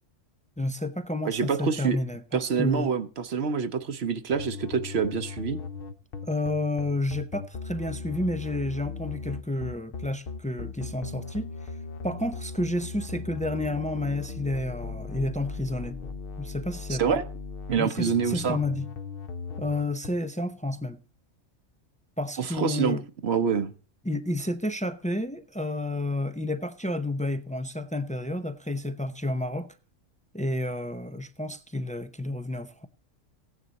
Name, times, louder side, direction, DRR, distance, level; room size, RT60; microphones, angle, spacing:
voice 1, 0.6-2.9 6.2-11.8 12.0-16.0 16.4-17.2 17.8-18.9 19.6-21.0 22.2-23.0 24.0-29.7 30.3-32.9, left 1 dB, 10° left, 0.3 m, -30 dB
voice 2, 1.2-2.0 2.3-5.6 16.9-17.2 17.7-18.6 22.4-23.0 23.2-23.7, right 6 dB, 60° right, 1.0 m, -26 dB
sound 1, 4.3-20.1, left 4 dB, 50° left, 0.9 m, -38 dB
15.5 x 9.9 x 4.0 m
omnidirectional pair, 1.3 m